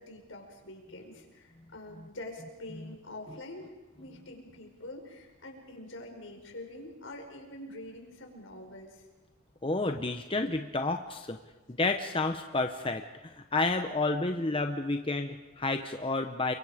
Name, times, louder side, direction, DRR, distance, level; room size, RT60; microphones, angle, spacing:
voice 1, 0.0-3.7 4.0-9.0, left 1 dB, 75° left, 2 dB, 5.0 m, -45 dB
voice 2, 9.6-11.4 11.7-16.5, left 3 dB, 25° left, 6 dB, 0.9 m, -30 dB
29.5 x 24.5 x 5.0 m, 1.2 s
head